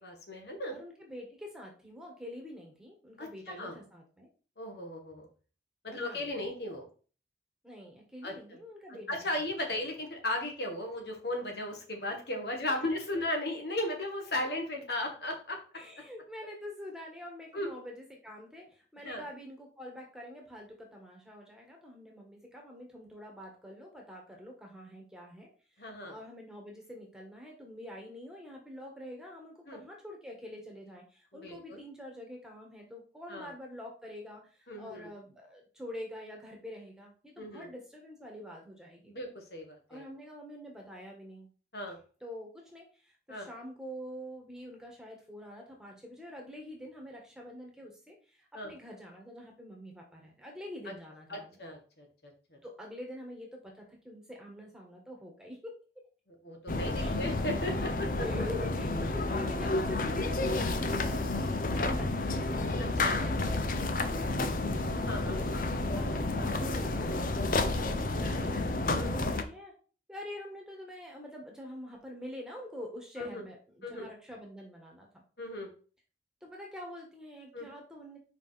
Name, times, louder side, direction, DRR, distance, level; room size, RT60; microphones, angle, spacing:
voice 1, 0.0-0.7 3.2-3.8 4.6-5.3 5.8-6.9 8.2-8.3 9.1-15.6 17.5-17.7 19.0-19.2 25.8-26.1 29.7-29.8 31.3-31.8 33.3-33.5 34.7-35.1 37.4-37.7 39.1-40.1 41.7-42.0 43.3-43.5 48.5-48.7 51.3-52.6 56.4-58.1 62.8-63.2 65.1-65.4 68.4-68.5 68.9-69.1 73.2-73.4 73.8-74.1 75.4-75.7 77.5-77.7, left 1 dB, 70° left, 2 dB, 1.7 m, -36 dB
voice 2, 0.7-4.3 5.9-6.3 7.6-9.4 15.8-25.5 25.8-39.1 39.9-41.5 42.2-51.6 52.6-56.0 57.0-57.2 58.2-62.5 63.2-64.8 65.3-65.7 65.9-69.7 70.1-75.2 76.4-78.2, left 1 dB, 5° right, 0 dB, 1.4 m, -46 dB
sound 1, 56.7-69.4, left 2 dB, 50° left, 0.6 m, -30 dB
5.2 x 4.9 x 4.2 m, 0.38 s
head